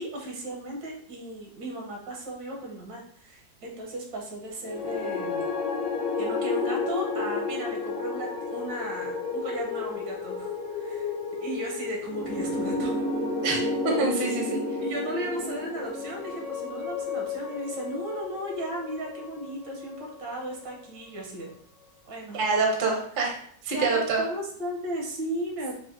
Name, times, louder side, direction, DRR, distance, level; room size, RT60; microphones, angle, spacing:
voice 1, 0.0-5.5 6.2-11.1 11.4-13.0 14.8-21.5 22.1-22.4 23.7-25.7, right 1 dB, 80° right, 0 dB, 1.6 m, -35 dB
sound 1, 4.6-20.9, left 3 dB, 65° left, 0.7 m, -32 dB
voice 2, 13.8-14.6 22.3-23.4 23.6-24.2, right 3 dB, 50° right, 0 dB, 0.6 m, -25 dB
4.8 x 2.5 x 2.6 m, 0.62 s
omnidirectional pair, 2.0 m